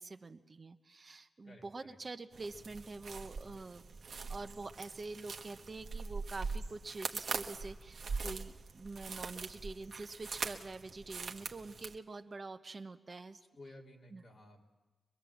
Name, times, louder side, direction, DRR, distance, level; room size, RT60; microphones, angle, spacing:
voice 1, 0.0-13.4 14.1-14.2, right 3 dB, 45° right, 8 dB, 1.0 m, -46 dB
voice 2, 1.4-2.0 13.5-14.6, left 1 dB, 65° left, -1 dB, 3.3 m, -55 dB
sound 1, 2.3-11.9, right 4 dB, 70° right, 1.2 m, -42 dB
23.5 x 21.5 x 7.2 m, 1.2 s
cardioid pair, 65°, 0 cm